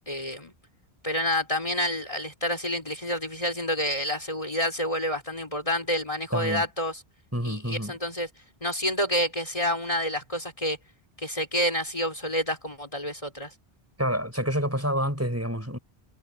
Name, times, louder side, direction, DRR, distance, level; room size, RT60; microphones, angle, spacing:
voice 1, 0.1-0.5 1.0-7.0 7.4-8.3 8.6-10.8 11.2-13.5, equal, 35° left, 3.8 m, -28 dB
voice 2, 6.3-6.7 7.3-7.9 14.0-15.8, equal, 15° right, 5.4 m, -28 dB
omnidirectional pair, 1.0 m